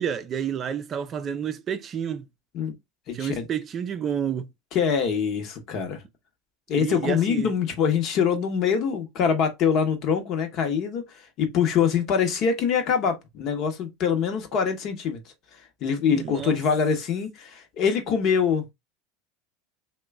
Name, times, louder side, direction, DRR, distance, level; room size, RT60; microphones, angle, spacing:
voice 1, 0.0-2.3 3.1-4.5 6.7-7.5 16.0-16.6, right 8 dB, 35° right, 0.5 m, -30 dB
voice 2, 3.1-3.5 4.7-6.0 6.7-11.0 11.4-15.2 15.8-18.6, left 7 dB, 50° left, 0.9 m, -24 dB
3.0 x 2.2 x 3.4 m
hypercardioid pair, 100°, 0 cm